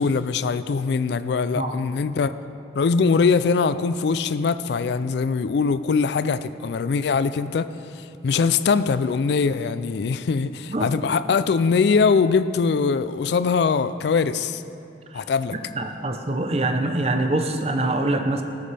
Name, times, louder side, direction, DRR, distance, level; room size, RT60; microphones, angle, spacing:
voice 1, 0.0-2.3 2.7-7.7 7.9-14.6 15.1-15.6, left 5 dB, 65° left, 13 dB, 0.3 m, -22 dB
voice 2, 15.5-18.4, right 2 dB, 35° right, 5 dB, 0.7 m, -24 dB
14.0 x 12.5 x 3.4 m, 2.6 s
head